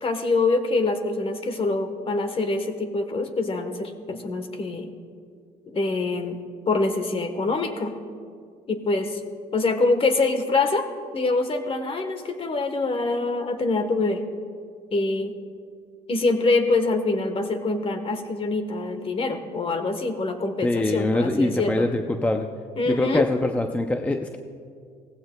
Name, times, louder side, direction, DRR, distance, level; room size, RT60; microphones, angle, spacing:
voice 1, 0.0-4.9 5.7-6.4 6.7-7.9 8.7-9.2 9.5-10.9 11.1-14.2 14.9-15.4 16.1-21.9 22.8-23.2, left 3 dB, 35° left, 7 dB, 1.2 m, -25 dB
voice 2, 20.6-22.5 22.9-24.4, left 2 dB, 10° left, 5 dB, 0.5 m, -24 dB
18.0 x 15.5 x 2.2 m, 2.2 s
cardioid pair, 110°, 17 cm